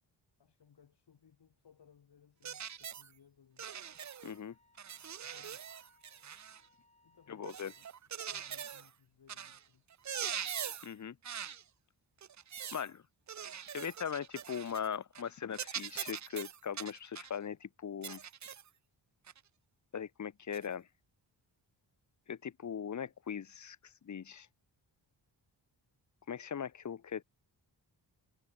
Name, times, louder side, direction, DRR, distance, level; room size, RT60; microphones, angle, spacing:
voice 1, 0.4-3.7 5.2-5.8 7.0-7.8 8.3-9.8, left 7 dB, 70° left, 2.9 m, -65 dB
sound 1, 2.4-3.1 3.6-4.4 4.8-6.6 7.4-8.9 9.3-9.6 9.9-10.9 11.2-11.6 12.2-12.9 13.3-14.9 15.1-15.3 15.5-17.4 18.0-18.7 19.3-19.4 20.5-20.7, right 8 dB, 40° right, 0.6 m, -42 dB
Wind instrument woodwind instrument, 3.8-8.1, left 2 dB, 15° left, 3.3 m, -70 dB
voice 2, 4.2-4.5 7.3-7.7 10.8-11.2 12.7-13.0 13.7-18.2 19.9-20.9 22.3-24.5 26.3-27.2, left 7 dB, 40° left, 0.8 m, -40 dB
wide cardioid pair, 130°, 43 cm